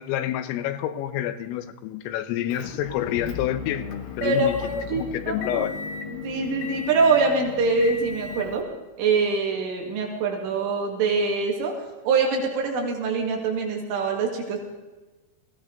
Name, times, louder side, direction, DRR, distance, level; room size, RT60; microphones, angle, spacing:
voice 1, 0.0-4.6 4.9-5.8, left 12 dB, 90° left, 12 dB, 3.6 m, -28 dB
Motor vehicle (road) / Engine, 2.5-8.6, left 5 dB, 65° left, 2.4 m, -36 dB
voice 2, 4.2-5.6 6.1-8.7 9.0-11.7 12.0-14.6, right 4 dB, 75° right, 1 dB, 4.6 m, -24 dB
21.5 x 15.5 x 3.9 m, 1.2 s
omnidirectional pair, 5.7 m